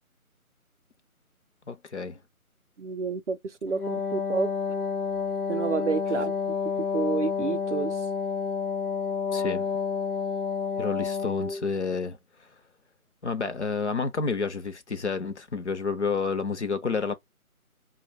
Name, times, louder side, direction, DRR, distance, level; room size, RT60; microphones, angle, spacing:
voice 1, 1.7-2.2 9.3-9.7 10.8-12.2 13.2-17.1, left 4 dB, 50° left, 0.7 m, -29 dB
voice 2, 2.8-4.5 5.5-6.4 6.9-8.0, right 5 dB, 55° right, 0.5 m, -29 dB
Wind instrument woodwind instrument, 3.7-11.7, left 5 dB, 85° left, 1.0 m, -29 dB
4.9 x 2.2 x 3.2 m
figure-of-eight pair, 160°, 44 cm